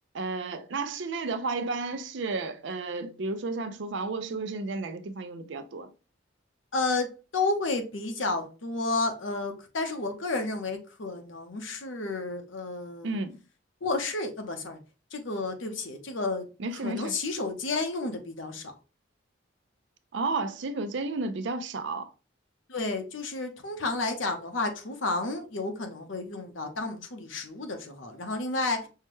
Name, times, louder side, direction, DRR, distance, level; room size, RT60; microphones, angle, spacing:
voice 1, 0.1-5.9 13.0-13.4 16.6-17.1 20.1-22.1, right 3 dB, 65° right, 0.5 m, -32 dB
voice 2, 6.7-13.2 13.8-14.8 15.1-16.5 16.8-18.7 22.7-28.9, left 3 dB, 80° left, 0.8 m, -31 dB
5.6 x 2.2 x 3.0 m
head